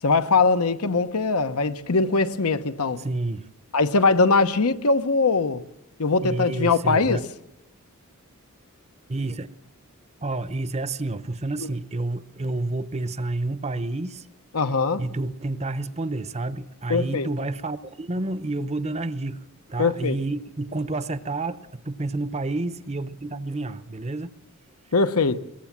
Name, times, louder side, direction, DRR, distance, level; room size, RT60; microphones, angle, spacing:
voice 1, 0.0-3.0 3.7-5.6 6.0-7.2 14.5-15.0 16.9-17.3 19.8-20.2 24.9-25.4, left 4 dB, 80° left, 1.0 m, -21 dB
voice 2, 3.0-3.5 6.2-7.2 9.1-9.6 10.2-14.3 15.0-19.4 19.7-24.3, right 2 dB, 30° right, 0.8 m, -29 dB
23.0 x 19.5 x 7.4 m
head